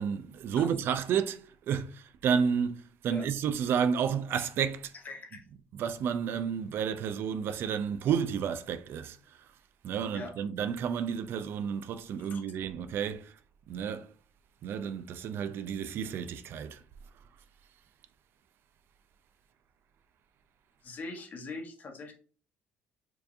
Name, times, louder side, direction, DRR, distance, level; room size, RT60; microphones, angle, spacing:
voice 1, 0.0-4.9 5.8-9.2 9.8-13.3 13.7-14.1 14.6-16.8, right 7 dB, 60° right, 0.3 m, -31 dB
voice 2, 5.0-5.4 10.1-10.5 12.2-12.4 20.8-22.1, left 3 dB, 45° left, 1.1 m, -42 dB
4.5 x 2.6 x 2.5 m
cardioid pair, 95°, 4 cm